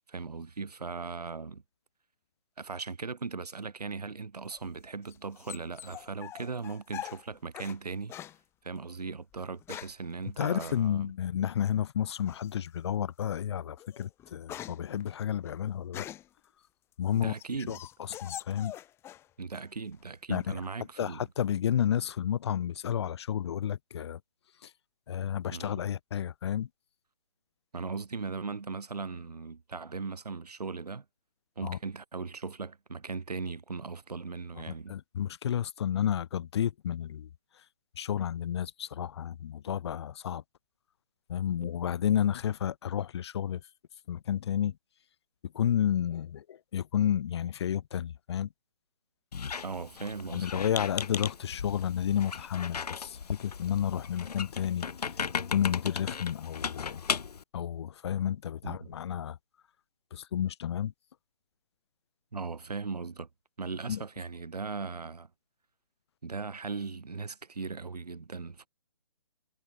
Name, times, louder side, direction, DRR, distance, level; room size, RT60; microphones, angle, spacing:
voice 1, 0.1-1.6 2.6-8.1 8.6-11.1 17.1-17.8 19.4-21.3 25.5-25.8 27.7-31.0 31.6-34.9 49.6-50.6 58.6-58.9 62.3-63.3 63.6-65.3 66.2-68.7, right 4 dB, 80° right, 5.5 m, -38 dB
sound 1, 4.5-7.8 8.1-8.4 9.3-10.1 10.6-10.8 12.3-12.7 13.2-13.4 13.8-16.4 16.9-19.3 19.5-20.2, left 12 dB, 10° left, 2.3 m, -44 dB
voice 2, 10.4-16.1 17.0-17.3 17.7-17.8 18.1-18.7 20.3-20.5 21.0-24.2 24.6-24.7 25.1-26.7 31.6-31.8 34.7-37.3 38.0-40.4 41.3-43.6 44.1-44.8 45.5-48.5 50.3-54.8 55.5-57.0 57.5-59.4 60.1-60.9 63.9-64.0, left 9 dB, 45° left, 1.5 m, -31 dB
Squeak, 49.3-57.4, left 6 dB, 80° left, 0.9 m, -36 dB
hypercardioid pair, 155°, 20 cm